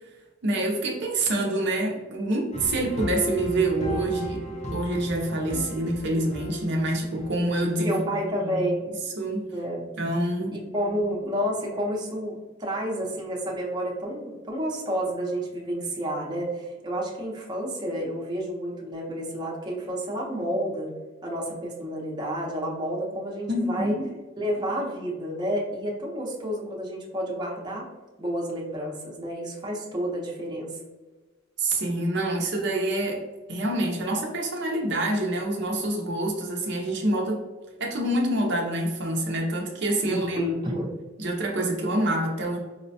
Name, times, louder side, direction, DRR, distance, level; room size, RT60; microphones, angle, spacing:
voice 1, 0.4-4.4 4.7-8.7 9.2-9.4 10.0-10.5 23.5-24.1 31.6-33.2 33.5-37.4 37.8-40.4 41.2-42.6, right 1 dB, 60° right, 0 dB, 0.6 m, -26 dB
sound 1, 2.5-7.7, equal, 35° left, 0.7 m, -35 dB
voice 2, 7.8-8.9 9.5-9.8 10.5-20.9 21.2-24.0 24.4-27.9 28.2-30.8 40.0-40.9, equal, 20° right, -3 dB, 0.7 m, -30 dB
4.8 x 2.1 x 2.6 m, 1.3 s
head